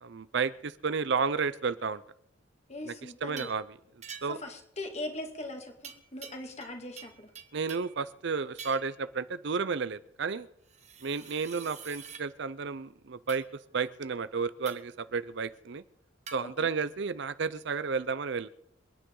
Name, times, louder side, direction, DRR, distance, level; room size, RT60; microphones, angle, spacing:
voice 1, 0.0-2.0 2.8-2.9 3.2-3.6 4.2-4.4 7.5-10.5 11.0-13.4 13.7-15.8 16.3-18.5, right 5 dB, 55° right, 15 dB, 0.5 m, -32 dB
voice 2, 2.7-3.5 4.3-7.3 16.4-16.7, left 1 dB, 30° left, 3 dB, 2.2 m, -40 dB
sound 1, 3.4-3.6 4.0-4.5 5.8-6.7 7.0-8.0 8.6-9.0 10.7-12.2 13.3-13.5 14.6-15.0 16.3-16.4, right 7 dB, 35° right, 1.2 m, -46 dB
28.0 x 9.7 x 3.8 m, 0.74 s
head